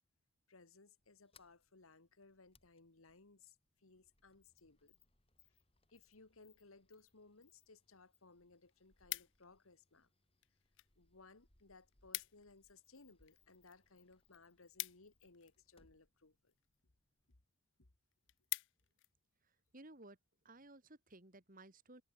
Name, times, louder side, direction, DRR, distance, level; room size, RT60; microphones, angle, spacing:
voice 1, 0.5-5.0 5.4-5.6 5.9-10.1 11.0-16.5 17.8-17.9, left 3 dB, 75° left, 1.8 m, -63 dB
Sliding door, 1.0-17.4, left 5 dB, 25° left, 3.5 m, -75 dB
sound 1, 8.3-9.7 10.4-10.9 11.2-11.3 11.6-11.7 11.9-12.5 12.9-15.7 16.5-16.8 17.3-17.4 17.7-17.8 18.1-19.1 19.6-19.8, left 20 dB, 55° left, 0.4 m, -46 dB
voice 2, 19.7-20.2 20.4-22.0, right 2 dB, 40° right, 2.9 m, -57 dB
head